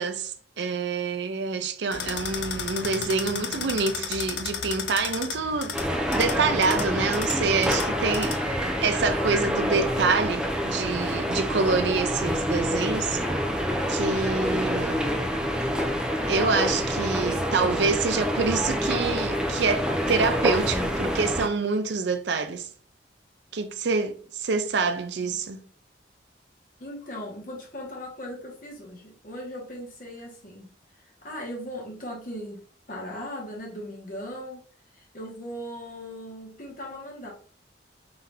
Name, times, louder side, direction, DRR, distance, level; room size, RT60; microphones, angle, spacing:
voice 1, 0.0-13.2 13.9-15.0 16.3-22.7 23.5-25.6, right 4 dB, 70° right, 0.5 m, -27 dB
sound 1, 1.9-8.5, left 6 dB, 70° left, 0.5 m, -34 dB
sound 2, 5.7-21.5, equal, 5° right, 0.5 m, -27 dB
voice 2, 26.8-32.6 32.9-34.6 34.9-37.3, equal, 45° left, 1.4 m, -38 dB
3.8 x 2.8 x 3.4 m
head